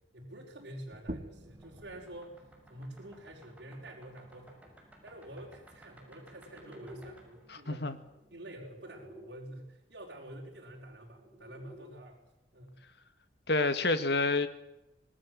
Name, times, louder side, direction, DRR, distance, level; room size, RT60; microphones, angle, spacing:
voice 1, 0.1-4.6 5.0-7.9 8.3-12.2 12.5-12.8, right 1 dB, 65° right, 4.9 m, -48 dB
sound 1, 0.9-6.1, right 1 dB, 45° right, 1.7 m, -49 dB
sound 2, 1.4-9.3 10.6-11.8, right 1 dB, 10° right, 6.8 m, -55 dB
voice 2, 7.5-8.0 13.5-14.5, left 3 dB, 70° left, 2.1 m, -28 dB
26.0 x 19.5 x 7.9 m
head